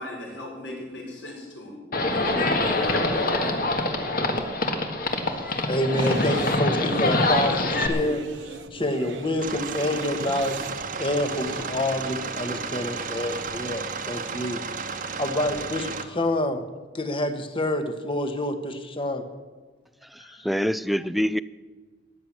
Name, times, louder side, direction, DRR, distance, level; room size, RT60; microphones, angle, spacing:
voice 1, 0.0-1.8 2.1-3.6, left 1 dB, 70° left, 5.1 m, -37 dB
Livestock farm animals working animals, 1.9-7.9, left 2 dB, 50° left, 1.7 m, -24 dB
voice 2, 5.7-10.6 11.0-14.6 15.2-16.6 16.9-19.2 20.2-20.4, left 1 dB, 30° left, 1.3 m, -27 dB
sound 1, 6.0-11.8, right 3 dB, 90° right, 1.1 m, -38 dB
sound 2, 9.4-16.0, right 5 dB, 45° right, 1.1 m, -33 dB
voice 3, 20.1-21.4, equal, ahead, 0.3 m, -25 dB
14.0 x 10.5 x 7.4 m
head